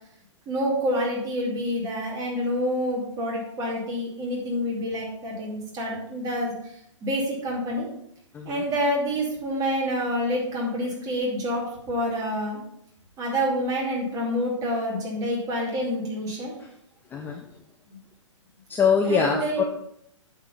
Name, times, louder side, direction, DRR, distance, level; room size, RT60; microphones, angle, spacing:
voice 1, 0.5-6.5 7.0-7.9 8.4-12.6 13.2-16.5 19.1-19.6, equal, 20° right, -2 dB, 2.8 m, -27 dB
voice 2, 8.3-8.7 16.6-16.7 17.1-17.4 18.7-19.6, left 6 dB, 10° left, 2 dB, 0.6 m, -23 dB
8.5 x 4.9 x 5.4 m, 0.74 s
figure-of-eight pair, 120°, 16 cm